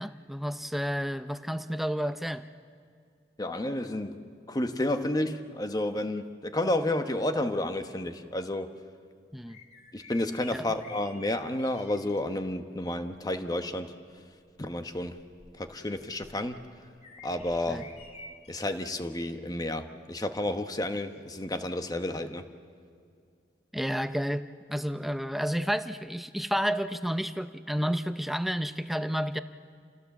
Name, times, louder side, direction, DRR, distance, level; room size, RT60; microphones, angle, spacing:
voice 1, 0.0-2.4 9.3-9.6 10.5-10.7 17.7-17.8 23.7-24.4 24.7-29.4, equal, ahead, 10 dB, 0.6 m, -31 dB
voice 2, 3.4-8.7 9.9-13.9 14.6-15.2 15.6-16.6 17.2-17.8 18.5-22.4, left 1 dB, 20° left, 8 dB, 1.0 m, -31 dB
sound 1, 9.5-12.2 13.1-13.4 14.0-18.7 19.2-19.4 21.2-21.3, left 3 dB, 35° left, 2.3 m, -51 dB
27.5 x 17.0 x 7.2 m, 2.3 s
head